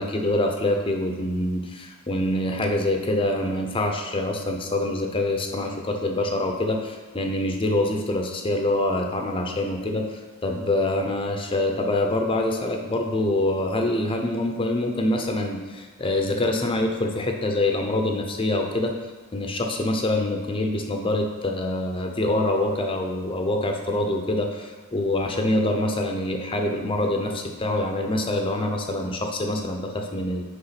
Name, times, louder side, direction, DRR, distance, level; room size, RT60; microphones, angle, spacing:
voice 1, 0.0-10.1 10.4-19.0 19.3-30.4, left 1 dB, 25° left, 3 dB, 0.6 m, -25 dB
6.7 x 4.9 x 5.8 m, 1.3 s
head